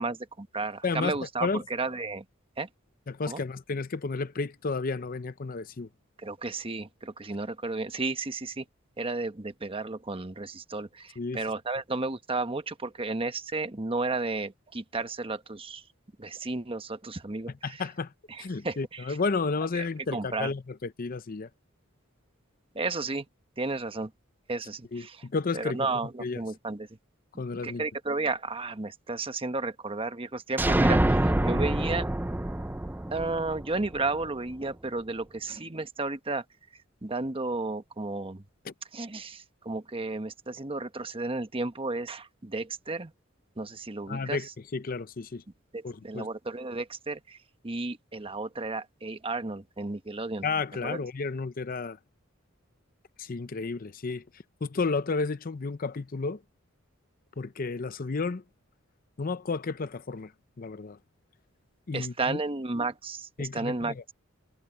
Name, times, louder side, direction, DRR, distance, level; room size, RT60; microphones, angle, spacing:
voice 1, 0.0-2.2 2.6-2.7 3.2-3.4 6.2-8.6 9.0-15.8 16.2-17.8 18.3-19.2 19.7-19.9 20.1-20.5 22.7-23.3 23.6-24.1 24.5-25.3 25.5-26.9 27.3-32.1 33.1-36.4 37.0-38.4 38.9-43.1 43.6-44.5 45.7-47.4 47.6-50.5 50.8-51.0 61.9-64.0, right 3 dB, 25° right, 1.1 m, -33 dB
voice 2, 0.8-1.2 1.4-1.6 3.1-5.9 11.2-11.4 17.6-18.1 18.4-21.5 24.9-25.9 26.2-26.4 27.4-27.8 38.7-38.8 44.1-45.4 45.8-46.3 50.4-52.0 53.2-54.2 54.6-56.4 57.4-58.4 59.2-60.3 60.6-61.0 61.9-62.4 63.4-63.9, left 4 dB, 45° left, 0.6 m, -32 dB
sound 1, 30.6-34.3, right 1 dB, 10° right, 0.5 m, -26 dB
head